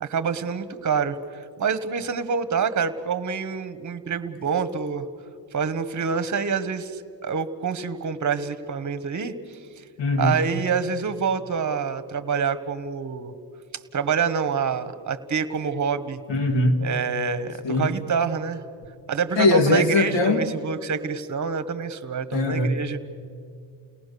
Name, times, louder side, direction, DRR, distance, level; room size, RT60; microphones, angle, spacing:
voice 1, 0.0-1.2 1.6-5.1 5.5-9.3 10.2-13.3 13.9-16.2 16.8-18.6 19.1-23.0, right 6 dB, 40° right, 12 dB, 1.3 m, -26 dB
voice 2, 10.0-10.4 16.3-16.8 17.6-17.9 19.4-20.5 22.3-22.7, left 2 dB, 65° left, 5 dB, 2.3 m, -20 dB
29.5 x 18.5 x 6.8 m, 2.4 s
cardioid pair, 125°, 46 cm